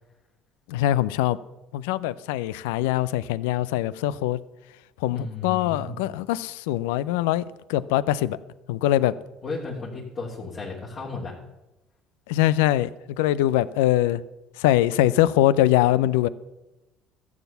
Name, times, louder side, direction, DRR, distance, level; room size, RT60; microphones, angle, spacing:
voice 1, 0.7-1.4 1.7-4.4 5.0-8.4 8.7-9.1 12.3-12.9 13.2-14.2 14.6-16.3, left 14 dB, 80° left, 18 dB, 0.4 m, -22 dB
voice 2, 5.1-6.0 9.0-9.1 9.4-11.3, left 3 dB, 45° left, -5 dB, 3.0 m, -34 dB
13.5 x 7.3 x 6.8 m, 0.99 s
hypercardioid pair, 65°, 0 cm